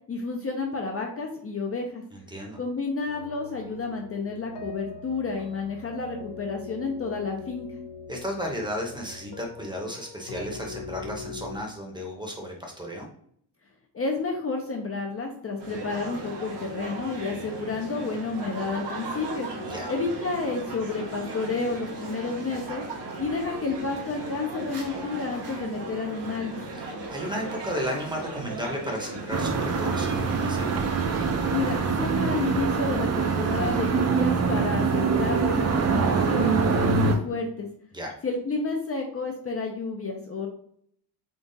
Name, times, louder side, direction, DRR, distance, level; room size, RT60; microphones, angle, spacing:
voice 1, 0.1-2.0 2.6-7.7 13.9-19.5 19.9-22.8 23.2-26.6 31.5-37.7 38.2-40.5, left 4 dB, 35° left, 1 dB, 0.5 m, -30 dB
voice 2, 2.1-2.6 8.1-13.1 19.6-19.9 26.7-30.8 37.9-38.1, equal, 10° right, 0 dB, 0.8 m, -34 dB
sound 1, 3.1-11.6, left 4 dB, 75° left, 0.8 m, -42 dB
sound 2, 15.6-31.9, right 2 dB, 85° right, 1.2 m, -37 dB
sound 3, 29.3-37.2, right 5 dB, 40° right, 0.5 m, -24 dB
3.8 x 2.4 x 3.9 m, 0.65 s
wide cardioid pair, 145°, 41 cm